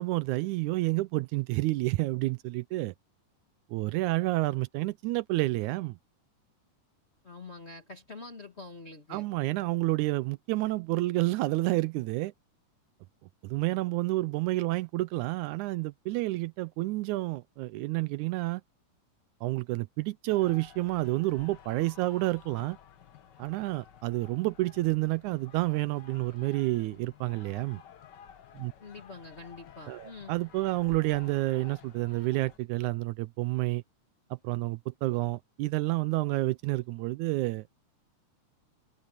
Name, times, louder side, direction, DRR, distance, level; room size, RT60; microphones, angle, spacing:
voice 1, 0.0-2.9 3.7-6.0 9.1-12.3 13.4-18.6 19.4-22.8 23.4-27.8 28.5-28.7 29.9-33.8 34.4-37.8, right 19 dB, 80° right, 1.9 m, -29 dB
voice 2, 7.2-9.3 28.8-30.3, left 3 dB, 30° left, 1.3 m, -46 dB
sound 1, 20.3-32.6, left 8 dB, 70° left, 1.0 m, -53 dB
omnidirectional pair, 3.6 m